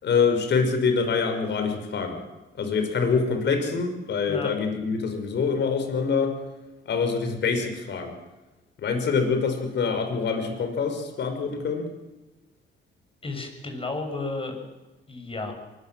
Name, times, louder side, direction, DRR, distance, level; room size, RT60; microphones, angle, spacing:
voice 1, 0.0-2.2 2.6-6.4 6.9-8.2 8.8-11.9, left 5 dB, 60° left, 6 dB, 5.7 m, -25 dB
voice 2, 13.2-14.6 15.1-15.5, left 3 dB, 25° left, 4 dB, 7.0 m, -32 dB
24.0 x 21.5 x 7.7 m, 1.1 s
cardioid pair, 90°, 20 cm